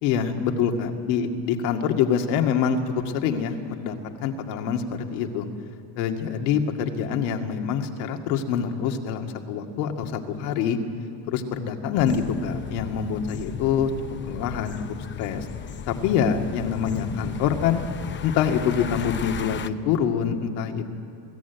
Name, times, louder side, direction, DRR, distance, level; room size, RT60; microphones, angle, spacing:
voice 1, 0.0-4.0 4.2-4.8 5.1-5.5 6.0-10.8 11.3-13.9 14.3-14.7 15.2-15.5 15.9-17.8 18.2-20.9, left 7 dB, 75° left, 4 dB, 2.2 m, -25 dB
passbys w talking, 12.0-19.7, left 8 dB, 25° left, 0.7 m, -35 dB
22.0 x 16.0 x 9.3 m, 2.6 s
supercardioid pair, 120°, 49 cm